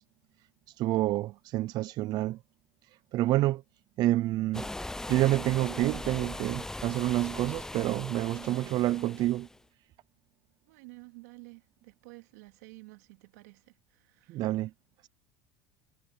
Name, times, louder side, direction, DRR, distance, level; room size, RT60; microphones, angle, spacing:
voice 1, 0.8-2.4 3.1-3.6 4.0-4.7 5.1-9.5 14.3-14.7, right 16 dB, 50° right, 0.5 m, -28 dB
sound 1, 4.5-9.6, left 2 dB, 5° left, 0.6 m, -40 dB
voice 2, 10.7-13.6 14.0-14.5, right 26 dB, 80° right, 2.4 m, -51 dB
supercardioid pair, 115°, 9 cm